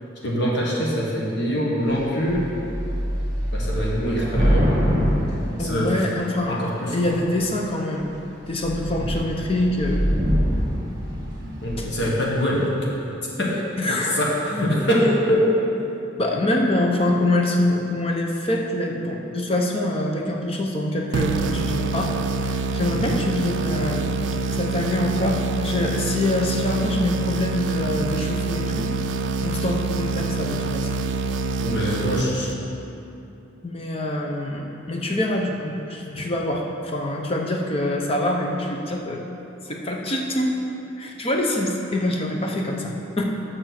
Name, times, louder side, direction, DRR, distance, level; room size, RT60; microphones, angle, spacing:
voice 1, 0.2-2.5 3.5-4.7 5.6-6.1 6.5-7.1 11.6-12.8 13.4-15.5 22.9-23.2 31.6-32.5, equal, 60° left, -4 dB, 1.5 m, -24 dB
Thunder / Rain, 1.9-2.0 2.3-6.4 7.1-7.6 8.0-8.1 8.4-12.2, equal, 20° right, 1.6 m, -24 dB
voice 2, 5.6-6.6 6.9-8.1 8.5-10.0 11.8-11.9 13.8-14.2 16.2-22.1 22.4-24.1 24.5-28.9 29.4-30.9 33.6-39.2 39.6-40.5 41.0-43.2, left 1 dB, 30° left, 0 dB, 0.8 m, -25 dB
sound 1, 21.1-32.8, right 3 dB, 60° right, 0.3 m, -26 dB
7.0 x 6.6 x 5.9 m, 2.8 s
head